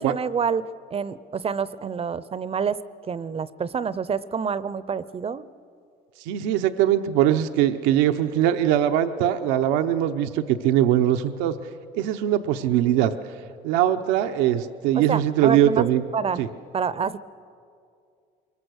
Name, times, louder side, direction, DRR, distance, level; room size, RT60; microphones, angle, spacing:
voice 1, 0.0-2.8 3.1-5.5 14.9-15.8 16.1-16.4 16.7-17.2, right 6 dB, 30° right, 17 dB, 0.7 m, -27 dB
voice 2, 6.3-11.5 11.9-13.1 13.6-16.0 16.4-16.5, right 11 dB, 90° right, 7 dB, 0.8 m, -21 dB
23.5 x 22.0 x 6.4 m, 2.4 s
supercardioid pair, 90°, 19 cm